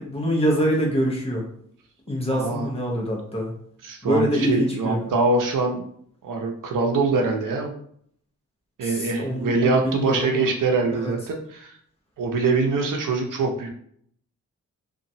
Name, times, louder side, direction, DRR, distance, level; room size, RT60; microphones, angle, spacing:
voice 1, 0.0-1.5 2.1-3.5 4.0-5.0 8.8-10.5 10.9-11.1, equal, 20° left, -3 dB, 0.7 m, -25 dB
voice 2, 2.3-2.7 3.8-5.9 6.2-7.7 8.8-11.8 12.2-13.7, right 3 dB, 85° right, 3 dB, 0.6 m, -23 dB
2.9 x 2.3 x 2.6 m, 0.63 s
wide cardioid pair, 165°, 31 cm